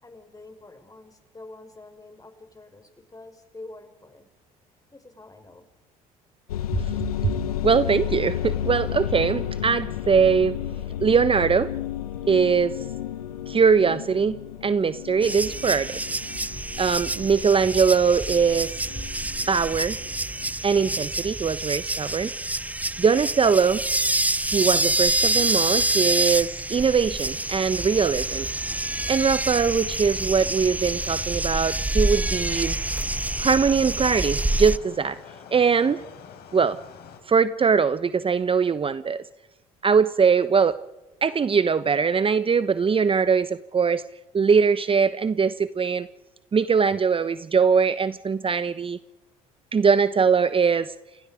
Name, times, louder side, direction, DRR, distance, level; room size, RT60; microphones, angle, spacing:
voice 1, 0.0-4.3 4.9-5.7, left 2 dB, 20° left, 7 dB, 5.6 m, -46 dB
sound 1, 6.5-20.5, left 11 dB, 90° left, 1.3 m, -32 dB
voice 2, 7.6-10.6 11.0-11.7 12.3-12.8 13.5-14.4 14.6-15.9 16.8-18.8 19.5-20.0 20.6-22.3 23.0-23.8 24.5-28.5 29.1-32.8 33.4-35.2 35.5-36.0 36.5-36.8 37.3-39.2 39.8-40.8 41.2-44.1 44.3-46.1 46.5-49.0 49.7-50.9, right 6 dB, 30° right, 14 dB, 1.0 m, -21 dB
sound 2, 15.2-34.8, right 2 dB, 10° right, 0.8 m, -27 dB
sound 3, 32.1-37.2, left 7 dB, 60° left, 6.1 m, -46 dB
29.5 x 29.0 x 5.1 m, 1.1 s
hypercardioid pair, 60°, 18 cm